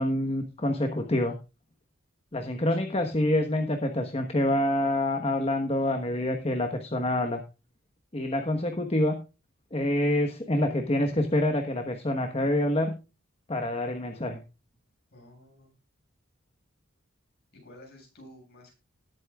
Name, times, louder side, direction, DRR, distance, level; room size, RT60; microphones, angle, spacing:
voice 1, 0.0-1.4 2.3-7.4 8.1-9.2 9.7-13.0 13.5-14.4, left 1 dB, 30° left, 5 dB, 1.2 m, -27 dB
voice 2, 15.1-15.7 17.5-18.7, left 1 dB, 50° left, 1 dB, 7.5 m, -51 dB
19.5 x 8.4 x 2.4 m, 0.30 s
head